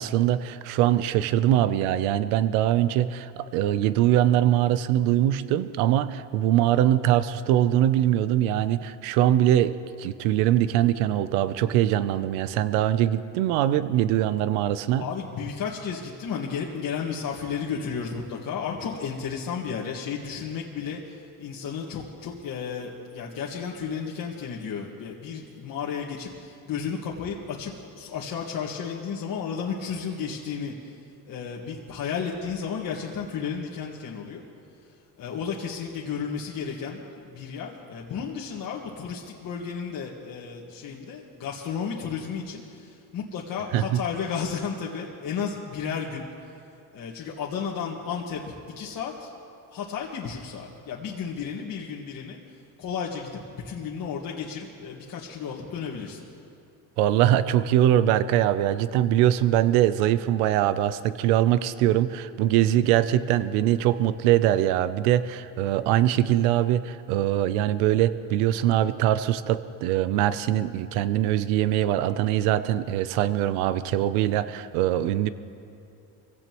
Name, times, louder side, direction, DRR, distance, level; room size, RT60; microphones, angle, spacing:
voice 1, 0.0-15.0 43.7-44.0 57.0-75.3, right 12 dB, 90° right, 14 dB, 0.7 m, -22 dB
voice 2, 15.0-30.9 31.3-34.4 35.2-46.2 46.9-49.3 49.7-52.4 52.8-56.3, left 6 dB, 50° left, -3 dB, 1.8 m, -33 dB
24.5 x 16.5 x 3.1 m, 2.6 s
supercardioid pair, 105°, 42 cm